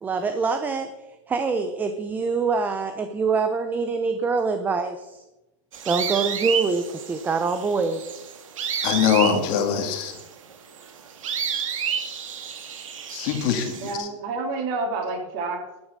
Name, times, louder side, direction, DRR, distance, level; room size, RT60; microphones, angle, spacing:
voice 1, 0.0-0.9 1.3-5.2 5.8-8.1, right 4 dB, 10° right, 8 dB, 0.7 m, -25 dB
sound 1, 5.7-13.9, right 7 dB, 80° right, 2.8 m, -31 dB
voice 2, 8.8-10.2 13.1-13.7 14.0-14.1, left 7 dB, 40° left, 6 dB, 2.3 m, -22 dB
voice 3, 13.8-15.9, right 3 dB, 35° right, 4 dB, 3.1 m, -29 dB
12.5 x 9.7 x 6.6 m, 0.98 s
supercardioid pair, 160°, 17 cm